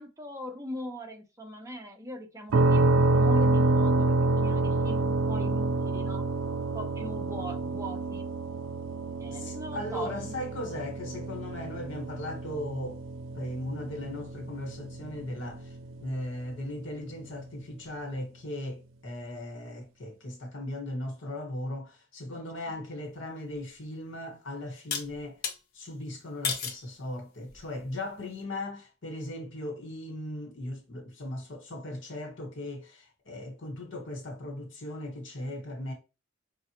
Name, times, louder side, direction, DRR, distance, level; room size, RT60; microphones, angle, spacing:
voice 1, 0.0-6.2 6.7-8.3 9.2-10.4 22.3-22.8, equal, 15° right, 0.8 m, -41 dB
sound 1, 2.5-16.2, right 2 dB, 85° right, 0.4 m, -28 dB
voice 2, 9.3-13.0 13.3-15.7 16.0-25.4 25.7-35.9, left 1 dB, 80° left, 1.3 m, -38 dB
sound 2, 23.5-23.6 24.9-25.6 26.4-26.8 27.5-27.9, left 6 dB, 55° left, 0.7 m, -33 dB
5.4 x 2.4 x 2.9 m
head